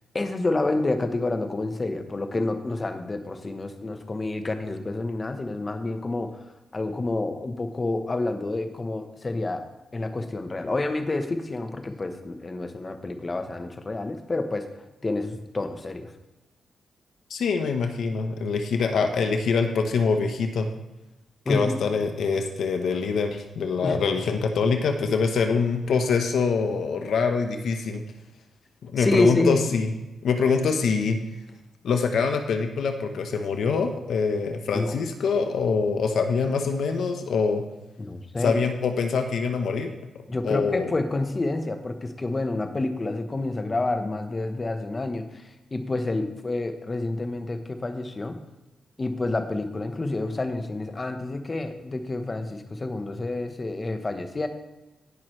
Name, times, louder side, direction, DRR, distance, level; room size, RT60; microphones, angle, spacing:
voice 1, 0.1-6.4 6.7-9.6 9.9-16.1 21.4-21.8 23.8-24.0 29.0-29.6 34.7-35.0 38.0-38.6 40.3-48.4 49.0-54.5, left 2 dB, 30° left, 7 dB, 1.0 m, -28 dB
voice 2, 17.3-20.7 21.5-28.0 28.8-29.9 30.2-31.2 31.8-37.6 38.4-39.9 40.4-40.9, left 5 dB, 75° left, 5 dB, 0.9 m, -24 dB
17.5 x 6.0 x 3.2 m, 1.0 s
cardioid pair, 90°, 0 cm